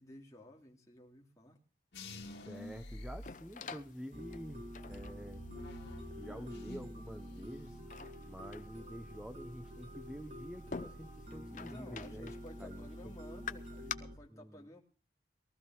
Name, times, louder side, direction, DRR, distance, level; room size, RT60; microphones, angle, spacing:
voice 1, 0.0-1.6 11.5-14.8, equal, 20° left, -2 dB, 3.0 m, -54 dB
sound 1, 1.9-4.0 4.4-7.0 7.3-7.9, left 1 dB, 90° left, 2.2 m, -49 dB
voice 2, 2.3-5.5 6.2-7.8 8.3-12.3 12.6-13.1 14.3-14.7, equal, 5° right, 8 dB, 0.7 m, -48 dB
sound 2, 2.5-13.9, left 5 dB, 45° left, 0.6 m, -50 dB
sound 3, 4.1-14.2, equal, 35° right, 1.4 m, -48 dB
22.5 x 14.0 x 3.0 m, 0.36 s
head